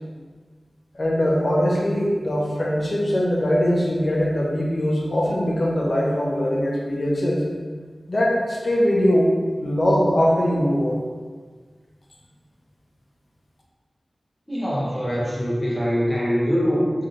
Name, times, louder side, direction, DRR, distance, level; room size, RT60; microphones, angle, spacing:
voice 1, 0.9-7.4 8.1-9.3 9.6-11.0, equal, 55° left, -3 dB, 0.6 m, -21 dB
voice 2, 14.5-16.9, equal, 5° left, -6 dB, 0.8 m, -23 dB
3.2 x 2.6 x 2.4 m, 1.5 s
wide cardioid pair, 80°, 0 cm